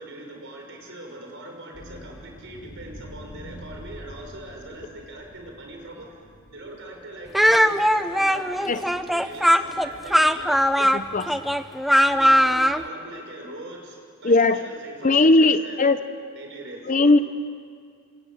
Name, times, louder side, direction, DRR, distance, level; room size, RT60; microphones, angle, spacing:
voice 1, 0.0-6.2 6.5-10.6 12.0-15.9 16.3-17.2, right 1 dB, 55° right, 2 dB, 5.9 m, -41 dB
sound 1, 1.7-10.3, equal, 70° left, 5.9 m, -46 dB
Speech, 7.3-12.8, equal, ahead, 0.6 m, -19 dB
voice 2, 10.9-11.3 14.2-14.6 15.0-16.0 16.9-17.2, left 2 dB, 35° left, 11 dB, 0.7 m, -18 dB
27.5 x 26.0 x 7.8 m, 2.1 s
head